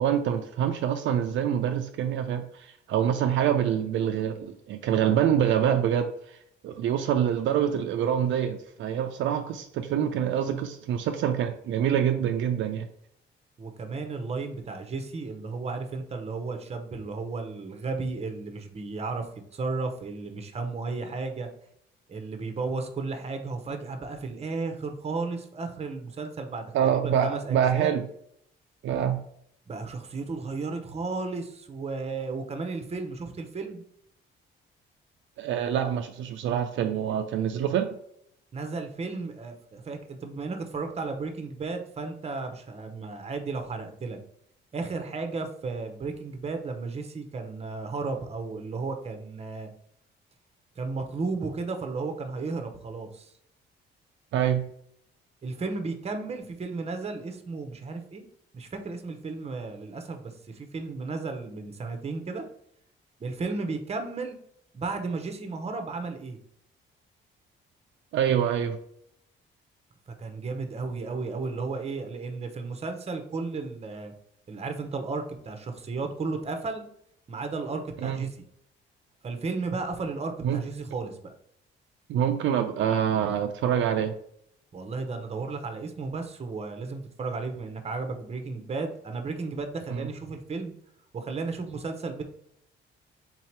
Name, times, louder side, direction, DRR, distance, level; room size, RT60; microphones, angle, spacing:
voice 1, 0.0-6.4 6.6-12.9 26.7-28.0 28.8-29.2 35.4-37.9 54.3-54.7 68.1-68.8 78.0-78.2 80.4-80.6 82.1-84.1 89.9-90.1, right 9 dB, 75° right, 6 dB, 0.4 m, -26 dB
voice 2, 13.6-21.5 22.1-27.9 29.7-33.8 38.5-44.2 44.7-49.7 50.8-53.3 55.4-58.2 58.5-62.4 63.2-64.4 64.7-66.4 70.2-74.1 74.5-76.8 77.3-78.4 79.2-81.2 84.7-90.7 91.1-92.2, right 3 dB, 30° right, 6 dB, 0.8 m, -34 dB
4.0 x 2.8 x 4.5 m, 0.72 s
cardioid pair, 90°, 20 cm